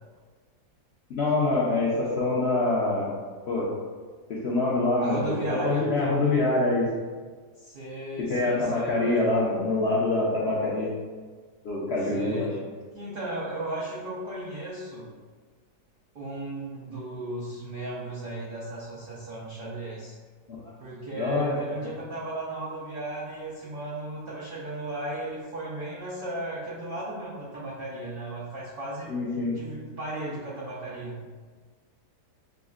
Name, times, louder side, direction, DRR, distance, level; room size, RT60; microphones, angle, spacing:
voice 1, 1.1-3.1 3.5-3.7 4.3-5.4 5.6-6.9 8.3-10.9 11.6-12.5 21.1-21.6 29.1-29.5, left 2 dB, 65° left, -7 dB, 0.6 m, -25 dB
voice 2, 5.0-5.9 7.6-9.3 12.0-12.6 12.9-15.1 16.1-20.2 20.8-29.1 29.4-31.2, right 2 dB, 90° right, -6 dB, 0.5 m, -35 dB
6.1 x 2.1 x 2.4 m, 1.5 s
omnidirectional pair, 1.8 m